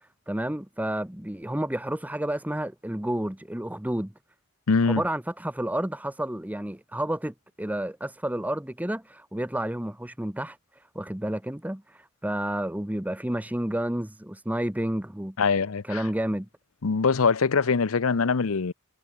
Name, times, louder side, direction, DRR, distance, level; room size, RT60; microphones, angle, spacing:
voice 1, 0.3-4.1 4.9-10.6 10.9-11.8 12.2-15.4 15.9-16.5, right 1 dB, 10° right, 1.0 m, -30 dB
voice 2, 4.7-5.0 15.4-16.0 16.8-18.7, left 5 dB, 80° left, 0.7 m, -23 dB
head